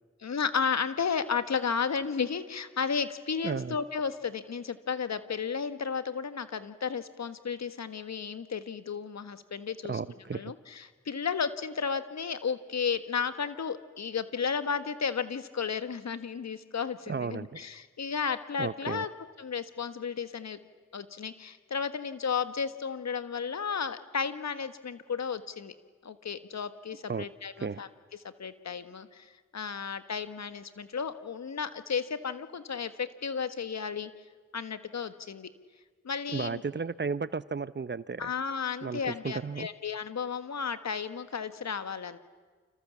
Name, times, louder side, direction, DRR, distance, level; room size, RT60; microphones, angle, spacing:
voice 1, 0.2-10.0 10.3-19.1 19.4-20.6 20.9-25.7 26.0-27.9 28.4-34.1 34.5-35.5 36.0-36.6 38.2-42.2, left 6 dB, 65° left, 11 dB, 1.5 m, -33 dB
voice 2, 3.4-3.8 9.9-10.5 17.1-17.6 18.6-19.0 27.1-27.2 27.6-27.8 36.3-38.3 38.8-39.7, right 5 dB, 35° right, 16 dB, 0.9 m, -34 dB
29.5 x 26.5 x 7.2 m, 1.5 s
supercardioid pair, 40°, 30 cm